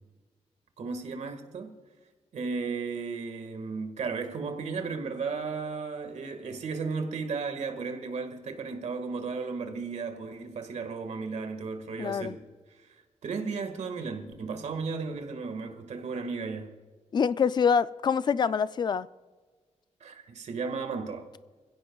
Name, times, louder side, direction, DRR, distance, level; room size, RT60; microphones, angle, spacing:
voice 1, 0.8-1.7 2.3-12.5 13.2-16.8 20.0-21.3, right 4 dB, 75° right, 1.8 m, -34 dB
voice 2, 12.0-12.4 17.1-19.1, left 6 dB, 35° left, 0.4 m, -25 dB
26.5 x 16.0 x 2.4 m
wide cardioid pair, 180°, 12 cm